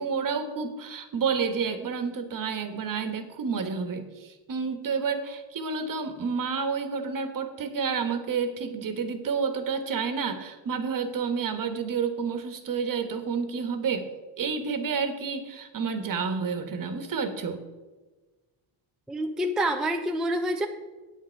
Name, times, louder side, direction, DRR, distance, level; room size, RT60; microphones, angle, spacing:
voice 1, 0.0-14.1 14.4-17.6, right 5 dB, 45° right, 8 dB, 1.4 m, -30 dB
voice 2, 19.1-20.7, right 1 dB, ahead, 4 dB, 0.5 m, -27 dB
9.0 x 8.9 x 4.5 m, 1.3 s
cardioid pair, 115°, 46 cm